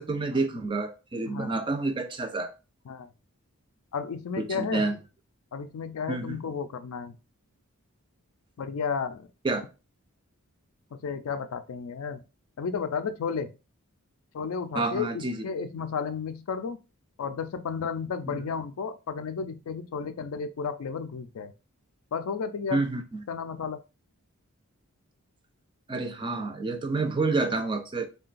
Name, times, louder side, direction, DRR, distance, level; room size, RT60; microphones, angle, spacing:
voice 1, 0.0-2.5 4.4-5.0 6.1-6.4 9.4-9.6 14.8-15.5 18.3-18.4 22.7-23.2 25.9-28.0, right 3 dB, 20° right, 0.3 m, -29 dB
voice 2, 3.9-4.9 5.5-7.2 8.6-9.3 10.9-12.2 12.6-13.5 14.3-16.8 17.2-21.5 22.1-22.8 23.3-23.8, left 6 dB, 70° left, 0.4 m, -33 dB
3.7 x 2.2 x 2.4 m
head